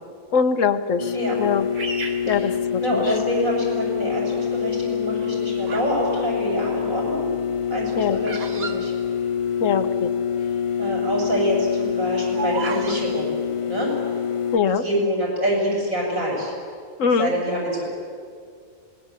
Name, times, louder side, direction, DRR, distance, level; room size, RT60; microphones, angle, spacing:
voice 1, 0.3-1.1 1.4-1.7 2.2-3.0 8.0-8.2 9.6-10.1 14.5-14.8 17.0-17.3, left 6 dB, 65° left, 9 dB, 1.5 m, -22 dB
sound 1, 1.0-14.6, left 8 dB, 50° left, 0.3 m, -26 dB
Bird vocalization bird call bird song, 1.7-3.3 3.9-4.3 5.1-6.0 6.3-9.8 10.0-10.1 10.3-10.7 11.1-13.0, right 4 dB, 90° right, 2.6 m, -34 dB
voice 2, 2.8-7.2 7.7-8.9 10.4-10.5 10.8-13.3 13.6-13.9 14.7-16.6 17.0-17.8, equal, 70° right, -2 dB, 7.9 m, -26 dB
26.0 x 20.0 x 8.3 m, 2.2 s
omnidirectional pair, 1.4 m